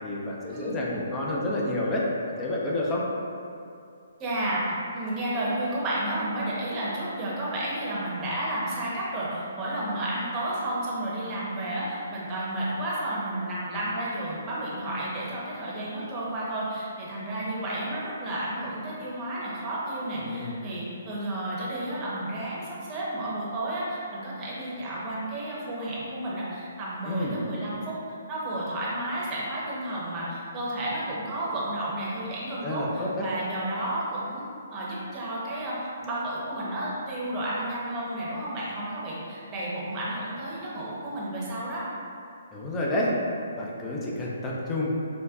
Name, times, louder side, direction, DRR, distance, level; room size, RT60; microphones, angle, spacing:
voice 1, 0.0-3.0 20.2-20.5 27.1-27.4 32.6-33.3 42.5-43.1 43.6-44.9, left 1 dB, 15° left, -5 dB, 0.5 m, -29 dB
voice 2, 4.2-28.0 28.3-34.5 34.7-41.9, right 1 dB, 25° right, -7 dB, 0.9 m, -32 dB
5.0 x 2.2 x 2.3 m, 2.5 s
hypercardioid pair, 140°, 0 cm